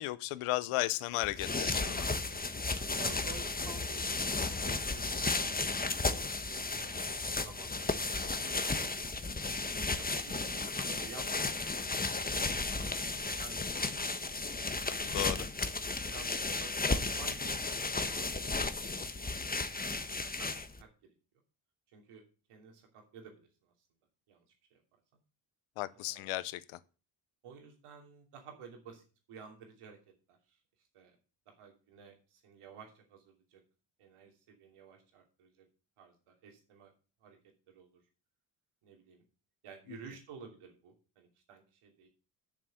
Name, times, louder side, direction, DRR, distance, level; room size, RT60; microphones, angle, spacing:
voice 1, 0.0-2.1 15.0-15.5 25.8-26.8, left 17 dB, 90° left, 0.7 m, -35 dB
sound 1, 1.2-20.8, left 3 dB, 20° left, 1.2 m, -34 dB
voice 2, 3.0-4.1 4.4-6.8 7.4-8.6 9.2-9.5 9.9-11.5 12.3-13.7 13.9-14.1 15.7-19.9 20.2-21.1 21.9-22.2 22.5-23.7 24.3-24.4 24.7-24.8 25.1-25.2 25.9-26.3 27.4-30.0 30.3-30.6 30.9-31.2 31.5-33.6 34.0-35.6 36.0-36.9 37.2-37.4 37.7-38.0 38.8-39.2 39.6-42.1, right 6 dB, 85° right, 3.0 m, -53 dB
7.5 x 6.7 x 6.3 m
supercardioid pair, 55°, 50 cm